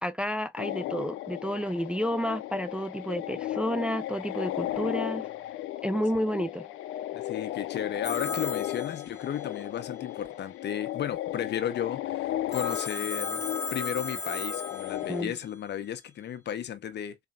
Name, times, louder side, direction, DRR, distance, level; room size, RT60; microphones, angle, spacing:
voice 1, 0.0-5.3 5.8-6.7 15.1-15.3, equal, 5° right, 0.4 m, -30 dB
sound 1, 0.6-15.2, left 13 dB, 85° left, 0.5 m, -35 dB
voice 2, 7.1-13.4 13.7-17.2, left 10 dB, 60° left, 0.8 m, -34 dB
Telephone, 8.0-9.6 12.5-15.4, left 4 dB, 15° left, 0.8 m, -36 dB
4.2 x 3.3 x 2.4 m
cardioid pair, 90°, 20 cm